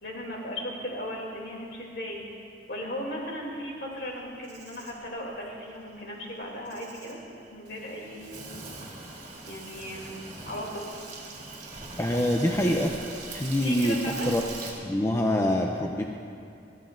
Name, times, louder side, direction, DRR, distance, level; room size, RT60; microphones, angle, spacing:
voice 1, 0.0-2.2 2.7-7.2 7.5-8.5 9.5-10.2 10.4-10.8 13.6-14.3, equal, 60° left, -2 dB, 2.8 m, -36 dB
Insect, 4.1-14.7, right 3 dB, 45° right, 3.2 m, -42 dB
voice 2, 12.0-12.9 13.3-14.0 14.2-14.4 14.8-16.0, left 1 dB, 15° left, 1 dB, 0.5 m, -25 dB
21.5 x 15.0 x 2.6 m, 2.5 s
head